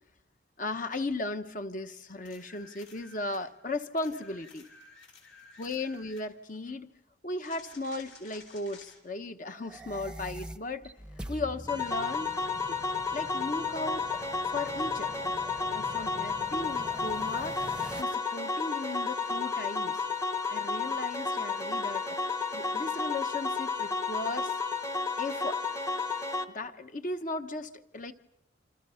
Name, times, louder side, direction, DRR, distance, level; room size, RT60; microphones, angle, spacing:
voice 1, 0.6-4.7 5.6-6.9 7.2-10.9 11.3-12.4 12.7-12.8 13.1-14.1 14.5-15.1 15.7-17.7 18.0-20.0 20.5-22.0 22.5-24.6 25.2-25.6 26.5-28.1, left 2 dB, 40° left, 8 dB, 1.0 m, -36 dB
sound 1, 2.3-3.5 4.0-6.3 7.4-9.0 12.4-12.5, left 4 dB, 80° left, 5.7 m, -53 dB
sound 2, 9.5-18.0, right 1 dB, 5° right, 0.8 m, -45 dB
sound 3, 11.7-26.4, left 4 dB, 15° left, 1.0 m, -32 dB
28.0 x 26.0 x 5.7 m, 0.88 s
head